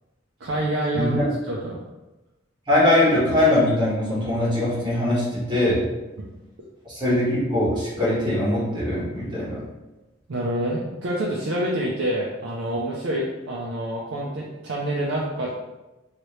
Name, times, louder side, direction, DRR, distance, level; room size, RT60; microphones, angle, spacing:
voice 1, 0.4-1.8 6.2-6.3 10.3-15.5, right 1 dB, 85° right, -4 dB, 0.5 m, -27 dB
voice 2, 0.9-1.2 2.7-5.8 6.8-9.6, left 1 dB, 25° right, -9 dB, 1.4 m, -21 dB
3.0 x 2.8 x 3.1 m, 1.0 s
head